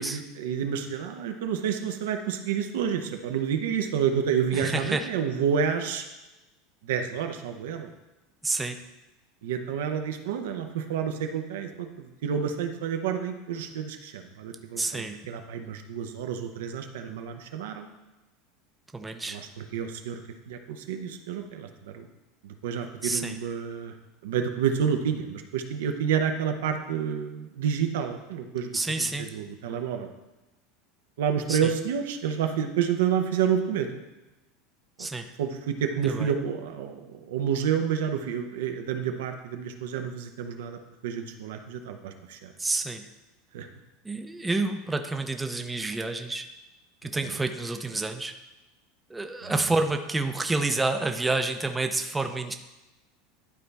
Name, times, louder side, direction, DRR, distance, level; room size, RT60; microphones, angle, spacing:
voice 1, 0.0-6.1 6.8-7.9 9.4-17.9 19.3-20.2 20.5-22.1 22.4-23.9 24.2-30.1 31.2-33.9 35.0-35.1 35.4-42.5 43.5-43.7 47.2-47.3 49.4-49.5, right 7 dB, 90° right, 5 dB, 0.8 m, -29 dB
voice 2, 4.5-5.1 8.4-8.8 14.8-15.2 18.9-19.4 23.0-23.4 28.7-29.4 31.5-31.7 35.0-35.3 36.0-36.3 42.6-43.1 44.0-46.5 47.0-48.3 49.1-52.5, right 2 dB, 10° right, 6 dB, 0.5 m, -29 dB
11.5 x 4.2 x 3.4 m, 1.0 s
supercardioid pair, 145°, 0 cm